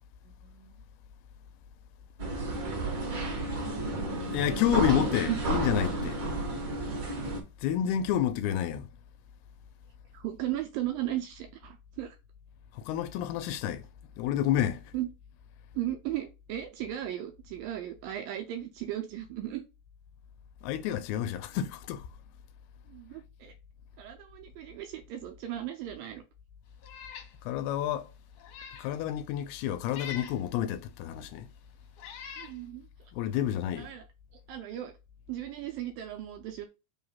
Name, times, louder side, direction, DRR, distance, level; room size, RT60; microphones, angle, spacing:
voice 1, 0.3-0.8 2.4-3.0 4.9-5.0 5.3-5.4 10.1-12.2 14.9-15.1 15.7-19.6 22.9-23.5 24.0-26.2 32.4-32.9 33.8-34.0 34.5-34.9 35.3-36.7, right 13 dB, 80° right, 2.2 m, -36 dB
sound 1, 2.2-7.4, right 2 dB, 40° right, 2.0 m, -32 dB
voice 2, 4.3-6.2 7.6-8.9 12.7-13.9 14.2-14.9 20.6-22.1 27.4-28.1 28.8-31.5 33.1-33.9, left 11 dB, 85° left, 2.5 m, -29 dB
Meow, 26.8-27.3 27.8-27.9 28.4-28.9 29.9-30.4 31.3-31.4 32.0-32.6, left 8 dB, 65° left, 1.7 m, -43 dB
5.7 x 3.2 x 5.6 m
omnidirectional pair, 4.7 m